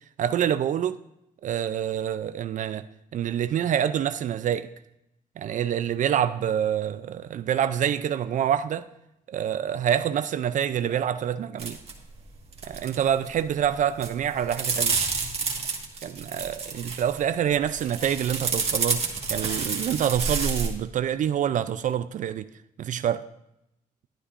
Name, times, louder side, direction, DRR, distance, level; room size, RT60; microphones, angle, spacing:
voice 1, 0.2-1.0 1.4-2.8 3.1-4.7 5.4-8.8 9.3-11.8 12.7-15.0 16.0-22.5 22.8-23.2, right 9 dB, 60° right, 0.4 m, -26 dB
sound 1, 11.6-11.9 12.2-13.0 13.2-13.6 14.0-17.2 17.7-20.7, right 5 dB, 45° right, 1.6 m, -29 dB
11.5 x 9.9 x 2.5 m
cardioid pair, 95°, 15 cm